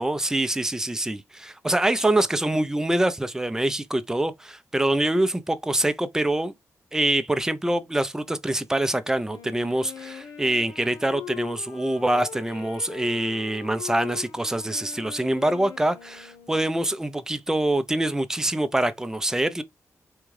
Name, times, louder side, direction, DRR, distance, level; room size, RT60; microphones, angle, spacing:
voice 1, 0.0-6.5 6.9-19.6, right 1 dB, 10° right, 0.5 m, -25 dB
Wind instrument woodwind instrument, 9.3-17.0, left 9 dB, 80° left, 0.8 m, -41 dB
3.6 x 2.2 x 3.2 m
cardioid pair, 80°, 6 cm